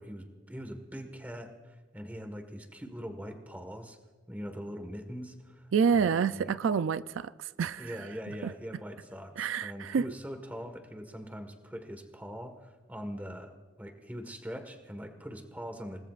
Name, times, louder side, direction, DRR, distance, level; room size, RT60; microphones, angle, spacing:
voice 1, 0.0-4.0 4.3-6.6 7.8-13.5 13.8-16.0, equal, 10° right, 1.5 m, -42 dB
voice 2, 5.7-8.1 8.4-8.5 9.4-10.0, right 6 dB, 80° right, 0.4 m, -28 dB
28.5 x 19.5 x 2.5 m
head